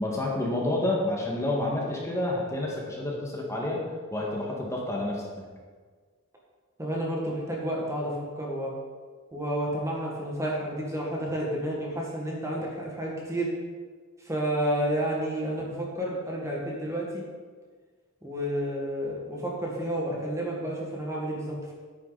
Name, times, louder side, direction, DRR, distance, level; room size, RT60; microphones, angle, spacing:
voice 1, 0.0-3.8 4.1-5.4, left 1 dB, 15° left, -3 dB, 1.8 m, -29 dB
voice 2, 6.8-8.7 9.3-13.5 14.2-17.2 18.2-21.7, right 1 dB, 15° right, -3 dB, 1.9 m, -30 dB
9.9 x 9.7 x 4.1 m, 1.5 s
head